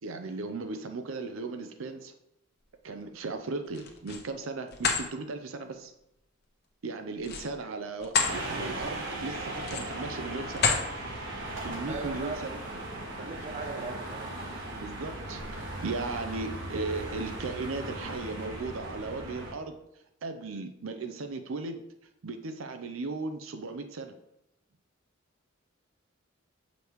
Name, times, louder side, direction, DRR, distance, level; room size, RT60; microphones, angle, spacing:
voice 1, 0.0-2.1 2.8-5.9 6.8-10.7 11.6-12.6 14.8-19.8 20.2-21.8 22.2-24.2, right 3 dB, 85° right, 7 dB, 0.6 m, -36 dB
sound 1, 3.7-4.3 4.7-5.0 7.2-8.4 8.8-9.0 9.6-10.0 10.5-10.9, left 5 dB, 55° left, 0.9 m, -28 dB
sound 2, 8.2-19.5, right 1 dB, 65° right, 1.3 m, -38 dB
voice 2, 11.9-12.5 13.2-14.5, right 4 dB, 40° right, 6 dB, 0.6 m, -39 dB
6.5 x 5.1 x 3.0 m, 0.83 s
head